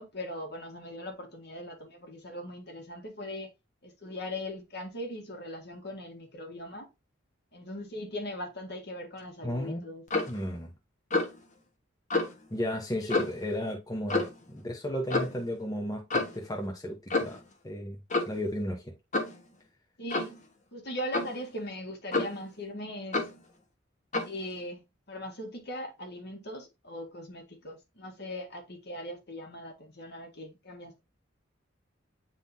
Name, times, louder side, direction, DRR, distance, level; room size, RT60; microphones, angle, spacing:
voice 1, 0.0-3.5 3.8-6.9 7.5-10.3 13.0-13.3 20.0-20.4 20.7-23.2 24.2-31.0, left 1 dB, 60° left, 1.9 m, -40 dB
voice 2, 9.4-9.9 10.3-10.7 12.5-18.0 18.3-18.9, equal, 20° left, 1.1 m, -34 dB
Clock, 10.1-10.4 11.1-11.4 12.1-12.3 13.1-13.4 14.1-14.4 15.1-15.4 16.1-16.4 17.1-17.4 18.1-18.4 19.1-19.4 20.1-20.4 21.1-21.4 22.1-22.5 23.1-23.4 24.1-24.4, left 2 dB, 40° left, 1.3 m, -29 dB
9.0 x 3.7 x 2.8 m
head